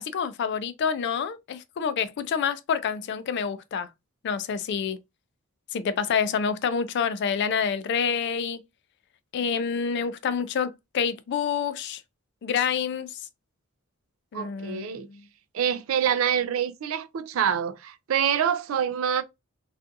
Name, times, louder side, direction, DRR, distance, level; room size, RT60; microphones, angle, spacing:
voice 1, 0.0-3.9 4.2-5.0 5.7-8.6 9.3-12.0 12.4-13.1 14.3-14.9, left 6 dB, 55° left, 0.3 m, -27 dB
voice 2, 14.3-15.1 15.5-19.2, right 8 dB, 70° right, 0.3 m, -26 dB
2.5 x 2.3 x 2.5 m
head